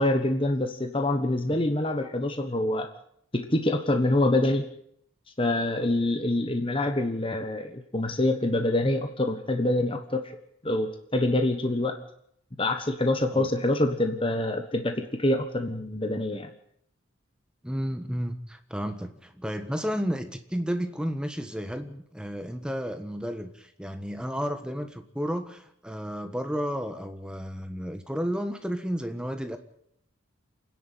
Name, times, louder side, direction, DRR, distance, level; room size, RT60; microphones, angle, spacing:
voice 1, 0.0-2.9 3.3-4.7 5.4-10.2 10.6-12.0 12.6-16.5, left 1 dB, 25° left, 6 dB, 1.2 m, -26 dB
voice 2, 17.6-29.6, equal, 5° right, 7 dB, 1.4 m, -32 dB
28.5 x 10.5 x 9.1 m, 0.73 s
head